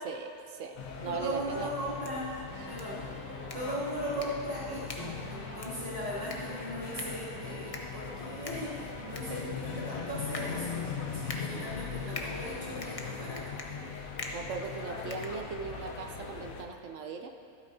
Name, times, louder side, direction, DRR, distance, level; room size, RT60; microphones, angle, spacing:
voice 1, 0.0-0.8 1.0-1.7 11.5-11.8 14.3-17.3, right 5 dB, 65° right, 5 dB, 0.9 m, -39 dB
sound 1, 0.7-16.6, left 5 dB, 65° left, 1.3 m, -40 dB
voice 2, 1.1-2.3 2.6-3.0 3.5-13.5, equal, 35° right, -10 dB, 2.7 m, -38 dB
sound 2, 1.8-15.9, left 2 dB, 30° left, 0.7 m, -46 dB
sound 3, 2.5-12.6, right 1 dB, 15° right, 1.2 m, -49 dB
13.5 x 12.0 x 2.7 m, 2.6 s
omnidirectional pair, 1.6 m